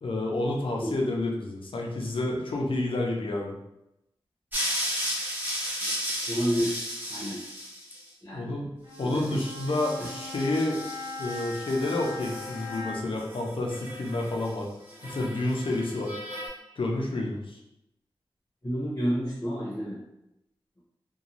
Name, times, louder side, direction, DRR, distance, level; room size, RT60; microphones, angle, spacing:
voice 1, 0.0-3.6 8.3-8.7 9.0-10.8 11.2-14.7 15.0-16.1 16.8-17.6, left 2 dB, 65° left, 0 dB, 0.5 m, -29 dB
sound 1, 4.5-8.0 9.0-12.8 13.1-14.5 14.9-16.5, equal, 20° right, 1.0 m, -35 dB
voice 2, 6.3-7.4 8.2-8.5 9.0-9.4 18.6-20.0, equal, 25° left, -7 dB, 0.8 m, -30 dB
Bowed string instrument, 8.8-13.3, left 3 dB, 55° right, 0.7 m, -40 dB
2.6 x 2.2 x 2.9 m, 0.87 s
wide cardioid pair, 100°, 10 cm